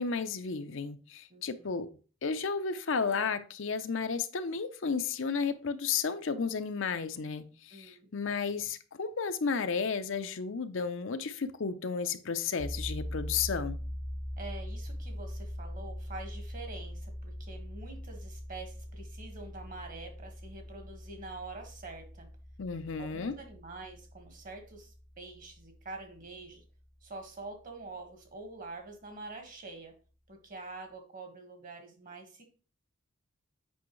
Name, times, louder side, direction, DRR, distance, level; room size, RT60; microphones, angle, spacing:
voice 1, 0.0-1.9 2.2-13.8 22.6-23.3, left 5 dB, 60° left, 0.6 m, -33 dB
voice 2, 1.3-1.7 7.7-8.1 14.4-22.3 23.0-26.6 27.0-29.9 30.3-32.4, right 3 dB, 40° right, 1.5 m, -46 dB
sound 1, 12.6-27.4, equal, 10° left, 0.4 m, -42 dB
8.3 x 5.4 x 3.1 m
head